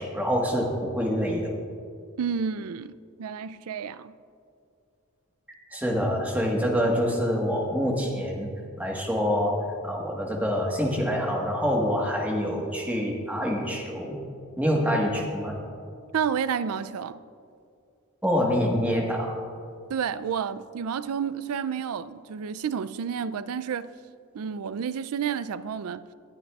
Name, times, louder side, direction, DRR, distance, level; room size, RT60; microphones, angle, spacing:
voice 1, 0.0-1.5 5.7-8.5 8.8-14.2 14.6-15.6 18.2-19.4, equal, 5° right, 1.3 m, -26 dB
voice 2, 2.2-4.2 16.1-17.2 19.9-23.9 24.3-26.1, right 7 dB, 80° right, 0.4 m, -30 dB
19.5 x 9.6 x 2.4 m
head